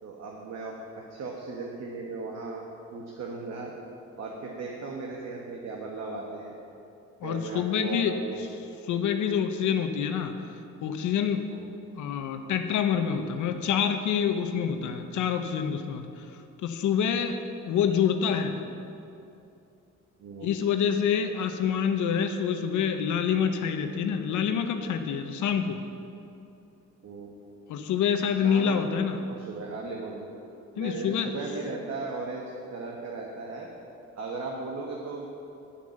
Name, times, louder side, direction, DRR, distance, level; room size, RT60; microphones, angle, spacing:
voice 1, 0.0-0.7 1.1-2.6 2.9-3.7 4.2-6.5 7.2-8.4 8.7-8.9 11.5-11.7 20.2-20.6 27.0-27.3 28.3-28.8 29.3-30.2 30.7-33.7 34.2-35.3, right 3 dB, 60° right, -1 dB, 1.5 m, -37 dB
voice 2, 7.2-8.1 8.9-10.4 10.8-11.5 12.0-16.3 16.6-17.4 17.6-18.6 20.4-25.8 27.7-29.2 30.8-31.3, left 7 dB, 80° left, 7 dB, 0.9 m, -27 dB
10.5 x 8.7 x 6.5 m, 2.7 s
cardioid pair, 90°, 30 cm